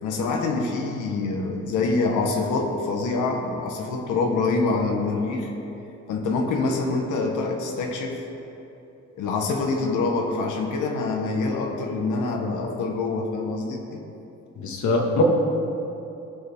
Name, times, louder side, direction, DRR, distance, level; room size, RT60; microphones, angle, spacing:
voice 1, 0.0-5.5 6.1-8.2 9.1-14.0, left 3 dB, 85° left, 2 dB, 1.4 m, -25 dB
voice 2, 14.6-15.2, left 3 dB, 70° left, 0 dB, 1.8 m, -22 dB
16.5 x 6.7 x 3.6 m, 2.9 s
cardioid pair, 90°, 30 cm